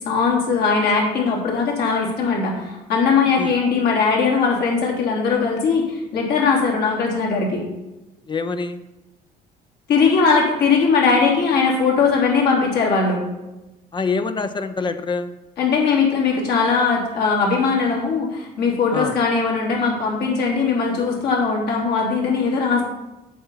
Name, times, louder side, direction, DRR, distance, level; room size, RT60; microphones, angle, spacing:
voice 1, 0.0-7.6 9.9-13.2 15.6-22.8, left 5 dB, 70° left, -3 dB, 3.5 m, -19 dB
voice 2, 8.3-8.8 13.9-15.3 18.9-19.2, left 4 dB, 30° left, 10 dB, 0.7 m, -25 dB
8.5 x 7.0 x 5.7 m, 1.0 s
cardioid pair, 110°, 17 cm